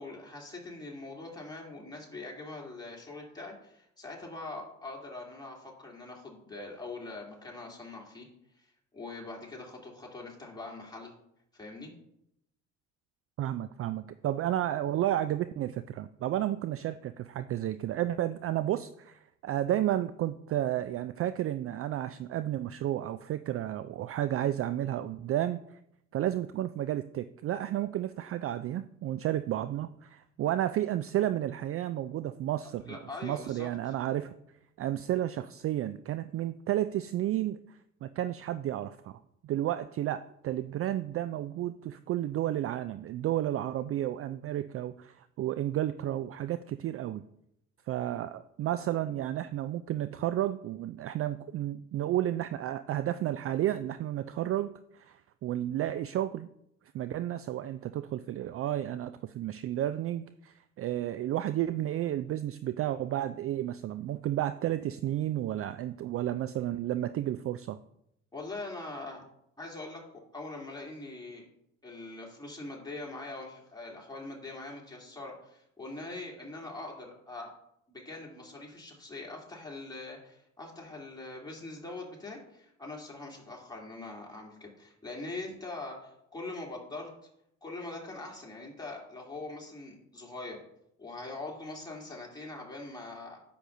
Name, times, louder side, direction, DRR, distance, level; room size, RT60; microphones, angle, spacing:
voice 1, 0.0-8.3 8.6-8.7 8.9-11.1 11.5-11.9 32.9-34.0 68.3-69.2 69.6-70.0 70.3-71.4 71.8-77.5 77.9-87.1 87.6-90.6 91.0-93.4, left 2 dB, 10° left, -3 dB, 3.0 m, -42 dB
voice 2, 13.4-25.6 26.1-33.0 33.2-34.3 34.8-47.2 47.9-56.5 56.9-67.8, right 12 dB, 40° right, 14 dB, 0.4 m, -32 dB
9.8 x 6.8 x 2.6 m, 0.76 s
hypercardioid pair, 55°, 38 cm